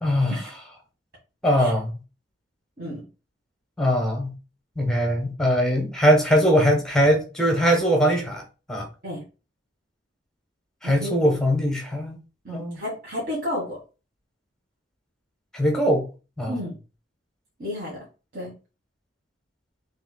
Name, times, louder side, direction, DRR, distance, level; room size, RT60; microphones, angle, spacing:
voice 1, 0.0-0.4 1.4-1.9 3.8-4.3 4.8-8.4 8.7-8.9 10.8-12.2 12.5-12.8 15.5-16.1 16.4-16.6, equal, 5° left, 0.9 m, -21 dB
voice 2, 10.8-11.4 12.4-13.8 16.5-16.7 17.6-18.0 18.3-18.5, left 1 dB, 50° right, 1.6 m, -31 dB
5.8 x 3.0 x 2.2 m
head